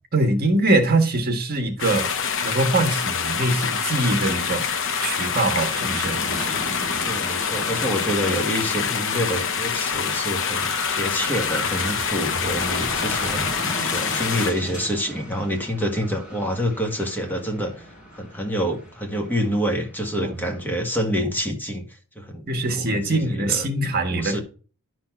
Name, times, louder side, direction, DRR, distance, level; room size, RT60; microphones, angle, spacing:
voice 1, 0.1-2.1 2.4-4.7 5.0-6.5 20.2-20.4 22.5-24.4, right 2 dB, 45° right, 1.6 m, -23 dB
sound 1, 1.8-14.5, left 6 dB, 60° left, 0.7 m, -26 dB
sound 2, 3.2-20.7, equal, 35° left, 3.4 m, -36 dB
voice 2, 7.0-13.5 13.8-17.7 18.1-21.9 22.1-22.5 22.7-23.7 24.1-24.4, equal, 10° left, 1.6 m, -27 dB
11.0 x 4.3 x 6.0 m
head